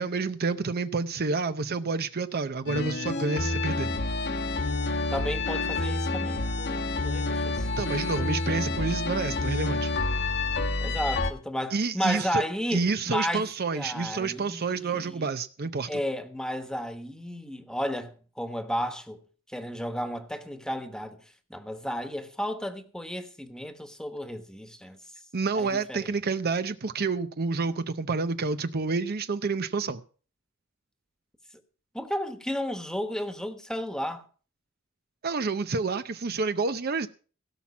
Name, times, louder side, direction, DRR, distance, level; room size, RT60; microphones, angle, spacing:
voice 1, 0.0-3.9 7.8-9.9 11.7-12.4 12.7-16.0 25.3-30.0 35.2-37.1, right 4 dB, 50° right, 0.6 m, -29 dB
sound 1, 2.7-11.3, left 2 dB, 60° left, 1.2 m, -28 dB
voice 2, 5.1-7.7 10.8-13.5 13.7-15.3 15.9-19.2 19.5-21.2 21.5-25.0 25.5-26.2 31.9-34.2, equal, 5° left, 1.3 m, -33 dB
17.0 x 6.0 x 7.2 m
head